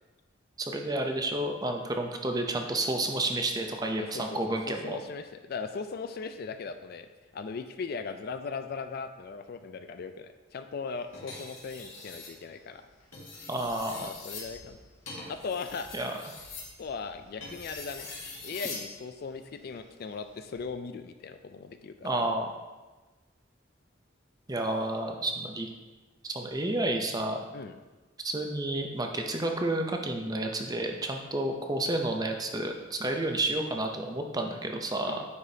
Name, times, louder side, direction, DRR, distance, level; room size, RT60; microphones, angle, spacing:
voice 1, 0.6-5.0 13.5-14.1 15.9-16.1 22.0-22.5 24.5-25.7 26.2-27.4 28.2-35.2, right 1 dB, 20° right, 3 dB, 0.6 m, -30 dB
voice 2, 4.0-7.1 7.3-12.9 14.0-14.8 15.3-16.2 16.8-18.1 18.4-22.1 27.5-27.8 35.1-35.3, left 5 dB, 50° left, 9 dB, 0.4 m, -38 dB
sound 1, 11.1-12.4 13.0-18.9 20.4-20.6, left 3 dB, 75° left, 2.0 m, -43 dB
9.6 x 5.0 x 2.8 m, 1.2 s
head